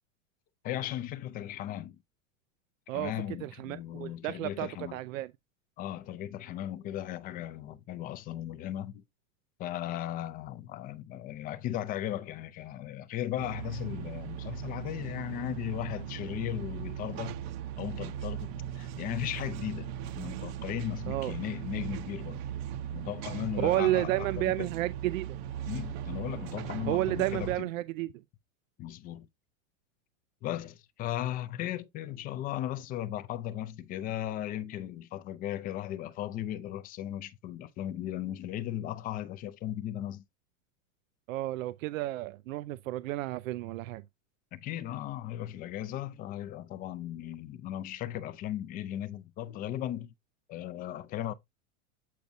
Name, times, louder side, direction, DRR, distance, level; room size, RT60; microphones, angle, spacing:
voice 1, 0.6-2.0 2.9-5.0 5.8-9.0 9.6-17.4 17.8-22.4 22.9-24.7 25.6-27.7 28.8-29.3 30.4-40.2 44.5-50.1 50.5-51.3, left 12 dB, 25° left, 0.4 m, -37 dB
voice 2, 3.4-5.3 21.1-21.3 23.6-25.3 26.9-28.1 41.3-44.0, right 16 dB, 85° right, 0.5 m, -31 dB
sound 1, 13.4-27.6, right 10 dB, 50° right, 0.8 m, -38 dB
8.3 x 5.1 x 2.7 m
supercardioid pair, 135°, 39 cm